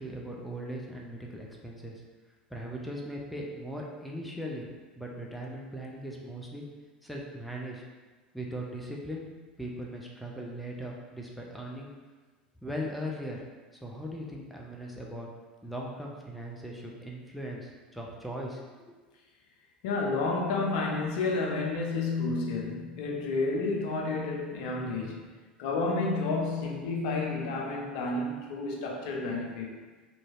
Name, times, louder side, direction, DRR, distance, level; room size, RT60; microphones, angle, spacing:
voice 1, 0.0-2.0 2.5-4.7 5.0-6.6 7.0-7.8 8.3-9.2 9.6-11.9 12.6-13.4 13.8-15.3 15.6-18.9, equal, ahead, -2 dB, 0.4 m, -39 dB
voice 2, 19.8-25.3 25.6-29.7, left 3 dB, 55° left, -1 dB, 0.5 m, -30 dB
3.0 x 2.6 x 2.4 m, 1.3 s
figure-of-eight pair, 80°, 5 cm